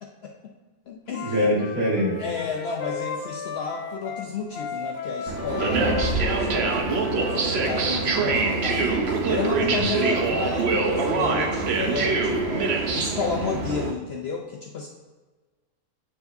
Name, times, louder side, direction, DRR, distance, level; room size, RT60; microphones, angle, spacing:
voice 1, 0.0-0.3 0.9-1.4 2.2-8.9 9.3-14.9, left 5 dB, 65° left, 1 dB, 0.6 m, -32 dB
Wind instrument woodwind instrument, 1.1-7.9, left 5 dB, 85° left, 1.2 m, -35 dB
voice 2, 1.2-2.2 9.6-9.9, left 1 dB, 75° right, -4 dB, 2.2 m, -24 dB
sound 1, 5.3-13.9, right 3 dB, 55° right, 0.8 m, -24 dB
8.4 x 4.7 x 2.6 m, 1.4 s
omnidirectional pair, 1.6 m